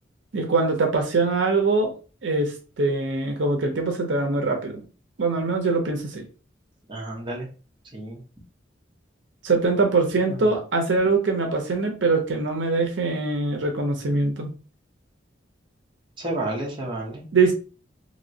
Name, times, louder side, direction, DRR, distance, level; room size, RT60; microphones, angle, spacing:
voice 1, 0.3-1.9 2.2-4.8 5.2-6.2 9.4-14.5 17.3-17.5, right 3 dB, 75° right, 4 dB, 0.6 m, -23 dB
voice 2, 6.9-7.5 7.9-8.2 10.3-10.4 16.2-17.2, right 1 dB, 25° right, -2 dB, 0.9 m, -31 dB
3.0 x 2.9 x 2.7 m, 0.36 s
head